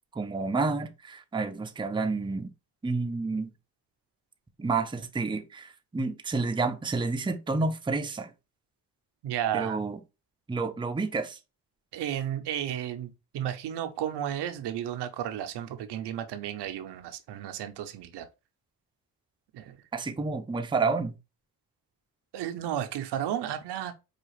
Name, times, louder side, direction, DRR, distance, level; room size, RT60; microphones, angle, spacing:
voice 1, 0.1-2.5 2.8-3.5 4.6-8.3 9.5-10.0 10.5-11.4 19.9-21.1, right 3 dB, 10° right, 0.5 m, -29 dB
voice 2, 9.2-9.8 11.9-18.3 19.5-19.8 22.3-23.9, right 10 dB, 80° right, 0.6 m, -33 dB
4.7 x 2.4 x 3.0 m
cardioid pair, 65°, 40 cm